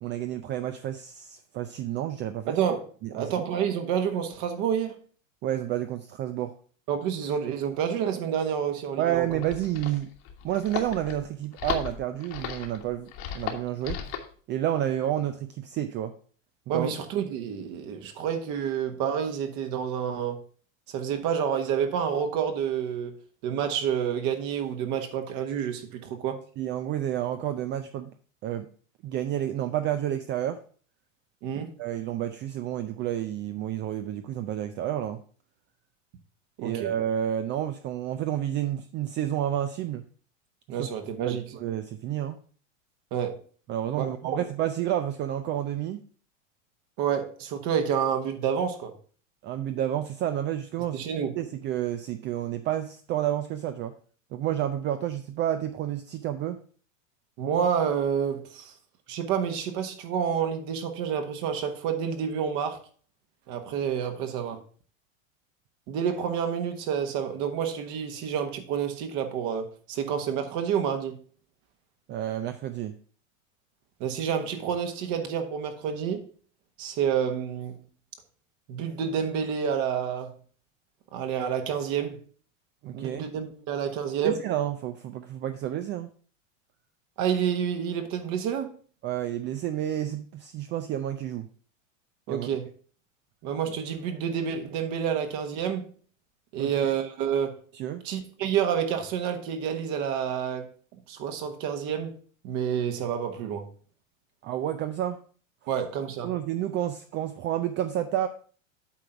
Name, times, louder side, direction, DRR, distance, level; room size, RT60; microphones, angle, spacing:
voice 1, 0.0-2.6 3.0-3.5 5.4-6.5 9.0-10.1 10.4-13.1 13.3-14.0 14.5-16.1 16.7-16.9 26.6-28.1 28.4-28.7 29.0-30.6 31.8-35.2 36.6-40.0 40.8-40.9 41.2-42.4 43.7-46.0 49.4-51.0 51.4-53.9 54.3-56.6 72.1-73.0 82.8-83.2 84.2-86.1 89.0-91.5 92.3-92.5 96.6-96.7 97.7-98.0 104.4-105.2 106.2-108.3, right 11 dB, 30° right, 0.4 m, -30 dB
voice 2, 2.5-5.0 6.9-9.3 16.7-20.4 20.9-23.2 23.4-26.4 31.4-31.7 36.6-36.9 40.7-41.5 43.1-43.4 44.0-44.4 47.0-48.9 50.9-51.3 57.4-58.7 59.1-62.8 63.5-64.6 65.9-71.2 74.0-76.3 76.8-77.8 78.7-80.3 81.1-82.2 82.9-84.4 87.2-88.7 92.3-92.7 93.4-95.9 96.5-97.6 98.0-100.7 101.1-102.2 102.4-103.6 105.7-106.3, right 8 dB, 50° right, 1.4 m, -29 dB
sound 1, 9.1-14.3, left 9 dB, 55° left, 1.6 m, -36 dB
8.3 x 3.8 x 5.7 m
supercardioid pair, 120°, 39 cm